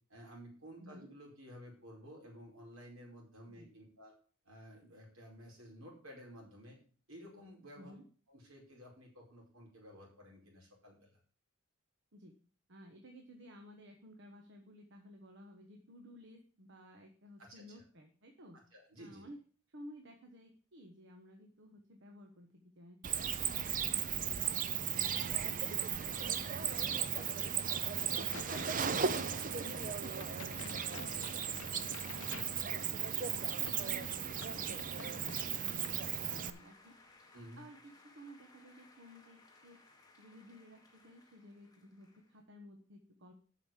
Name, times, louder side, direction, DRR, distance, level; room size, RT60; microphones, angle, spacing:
voice 1, 0.1-4.1 4.4-6.8 7.1-7.9 8.3-11.2 17.4-17.8 18.5-19.3 25.1-25.5 33.5-33.7 37.3-37.6, equal, 75° right, -1 dB, 4.9 m, -54 dB
voice 2, 0.8-1.1 3.5-3.7 7.7-8.0 12.1-12.4 12.7-18.6 19.0-19.4 19.7-24.8 25.3-28.7 29.0-30.0 30.3-33.1 33.6-36.9 37.6-39.8 40.2-43.3, equal, 60° right, 3 dB, 1.3 m, -55 dB
Cricket, 23.0-36.5, right 8 dB, 40° right, 0.6 m, -36 dB
sound 1, 25.8-42.4, left 2 dB, 20° left, 1.7 m, -60 dB
Crack, 28.1-36.6, left 7 dB, 65° left, 0.6 m, -54 dB
8.2 x 6.5 x 7.4 m, 0.42 s
head